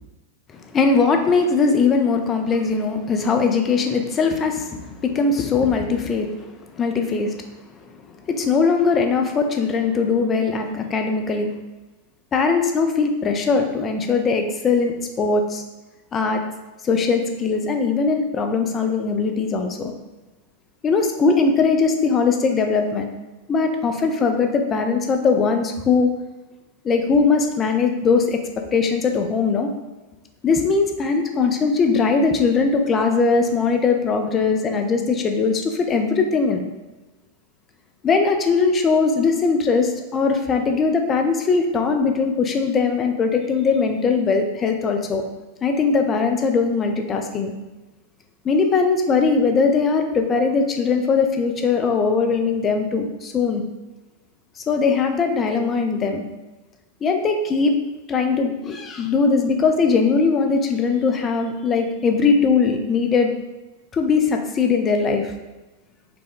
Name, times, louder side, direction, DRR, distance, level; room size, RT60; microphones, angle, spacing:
voice 1, 0.7-7.3 7.9-11.5 12.3-15.6 16.1-16.4 16.8-19.9 20.8-23.1 23.5-26.1 26.8-28.4 28.7-29.7 30.4-36.6 38.0-45.2 45.6-47.5 48.4-53.6 54.7-56.2 57.0-57.8 58.1-63.3 63.9-65.3, left 4 dB, 25° left, 4 dB, 0.5 m, -20 dB
4.8 x 2.3 x 3.7 m, 1.1 s
figure-of-eight pair, 90°, 0 cm